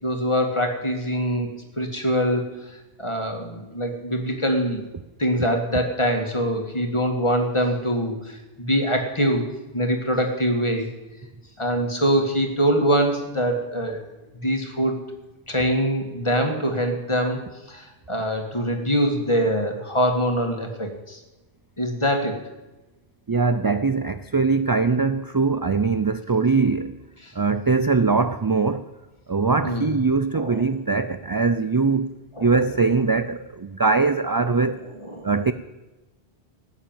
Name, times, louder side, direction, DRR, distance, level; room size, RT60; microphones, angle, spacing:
voice 1, 0.0-1.5 1.8-2.4 3.0-4.8 5.2-9.4 9.7-10.9 11.6-14.0 14.3-15.0 15.5-21.2 21.8-22.4 27.2-27.3 29.6-30.0 30.3-30.6 32.4-32.6 34.6-35.3, equal, 25° left, 4 dB, 2.2 m, -24 dB
voice 2, 23.3-26.9 27.4-28.9 29.3-32.1 32.4-34.8 35.2-35.5, right 4 dB, 35° right, 12 dB, 0.3 m, -21 dB
17.5 x 7.3 x 9.1 m, 1.1 s
omnidirectional pair, 1.1 m